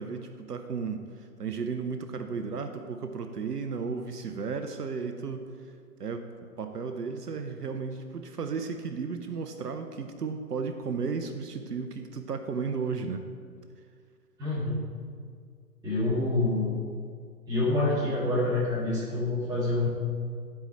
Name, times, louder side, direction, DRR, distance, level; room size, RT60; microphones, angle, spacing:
voice 1, 0.0-5.5 6.0-6.3 6.6-13.2, right 5 dB, 75° right, 7 dB, 0.7 m, -34 dB
voice 2, 14.4-14.8 15.8-16.7 17.5-19.9, left 2 dB, 10° right, -8 dB, 1.7 m, -27 dB
11.0 x 4.7 x 4.4 m, 2.1 s
figure-of-eight pair, 135°, 48 cm